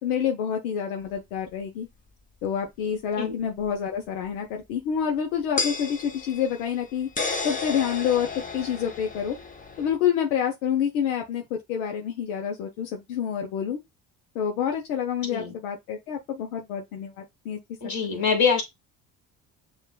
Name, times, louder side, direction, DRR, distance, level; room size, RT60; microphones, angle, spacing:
voice 1, 0.0-1.9 2.4-7.1 7.4-8.3 8.5-9.4 9.8-13.8 14.3-18.2, left 8 dB, 85° left, 0.8 m, -28 dB
sound 1, 1.1-1.2 3.6-3.7 5.6-10.0, left 4 dB, 20° left, 0.8 m, -32 dB
voice 2, 17.8-18.6, left 5 dB, 45° left, 2.1 m, -24 dB
6.5 x 2.5 x 2.3 m
hypercardioid pair, 65°, 42 cm